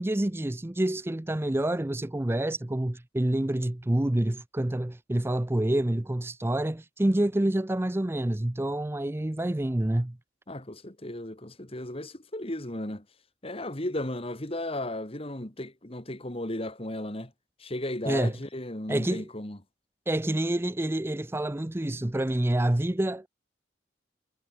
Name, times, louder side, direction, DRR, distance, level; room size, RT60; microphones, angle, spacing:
voice 1, 0.0-10.2 18.1-18.4 18.9-19.3 20.1-23.3, right 1 dB, 15° right, 0.5 m, -27 dB
voice 2, 10.5-13.0 13.4-17.3 17.6-19.6, left 1 dB, 30° left, 2.6 m, -35 dB
head